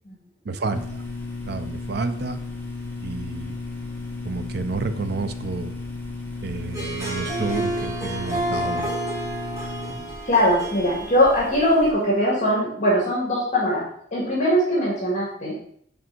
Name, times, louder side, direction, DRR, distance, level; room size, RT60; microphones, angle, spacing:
voice 1, 0.4-1.0 1.5-2.4 3.0-3.6 4.2-5.8 6.4-8.9, right 3 dB, 60° right, 9 dB, 0.6 m, -30 dB
sound 1, 0.7-11.9, left 3 dB, 10° left, 1.0 m, -35 dB
Harp, 6.6-12.1, right 1 dB, 15° right, 1.6 m, -30 dB
voice 2, 10.2-15.6, equal, 40° left, -5 dB, 1.9 m, -21 dB
7.6 x 3.5 x 4.4 m, 0.64 s
head